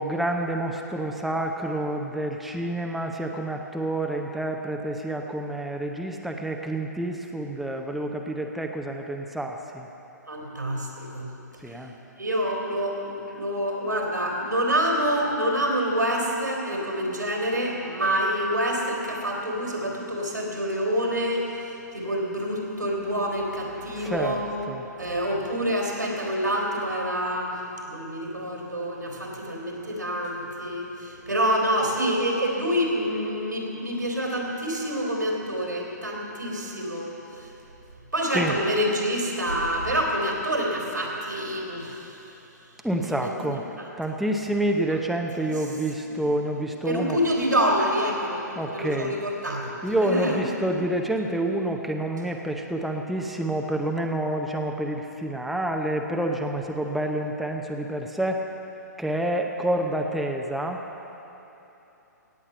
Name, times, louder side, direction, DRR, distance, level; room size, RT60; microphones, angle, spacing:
voice 1, 0.0-9.9 11.6-11.9 24.0-24.4 24.7-24.8 38.3-38.5 42.8-43.6 44.0-47.2 48.6-49.1 49.8-58.5 59.0-60.8, right 1 dB, ahead, 2 dB, 0.7 m, -28 dB
voice 2, 10.3-11.3 11.7-11.8 12.2-24.5 25.0-27.6 27.9-37.5 38.1-42.2 43.2-43.5 44.9-45.0 45.4-45.5 46.1-48.4 48.7-49.7 50.0-50.4, equal, 85° right, -1 dB, 3.5 m, -27 dB
17.0 x 8.6 x 6.8 m, 3.0 s
figure-of-eight pair, 120°, 10 cm